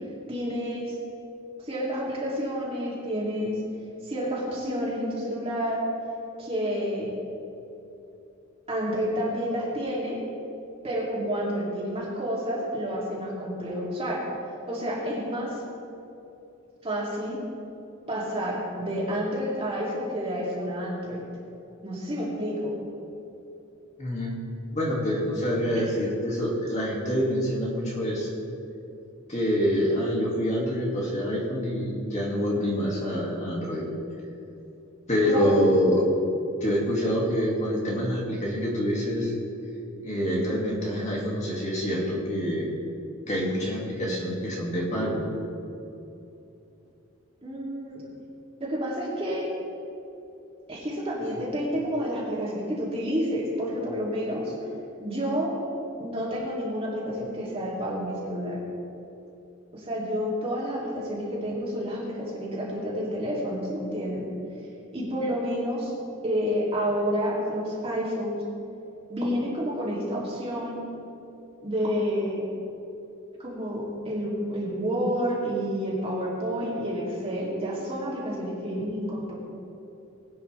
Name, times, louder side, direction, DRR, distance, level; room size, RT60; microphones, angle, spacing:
voice 1, 0.3-1.0 1.6-3.6 4.0-5.9 6.4-7.1 8.7-10.2 10.8-14.2 14.7-15.6 16.8-17.4 18.1-21.2 21.8-22.7 25.7-25.9 35.3-35.6 47.4-48.0 48.6-49.5 50.7-54.5 55.0-55.5 56.0-58.6 59.7-64.3 64.9-65.9 66.2-68.4 69.1-70.8 71.6-72.5 73.4-79.3, equal, 25° right, -5 dB, 3.1 m, -29 dB
voice 2, 24.0-28.3 29.3-33.8 35.1-36.0 36.6-39.3 40.0-42.7 43.3-45.2, equal, 35° left, -4 dB, 2.4 m, -26 dB
21.0 x 9.5 x 3.5 m, 2.8 s
head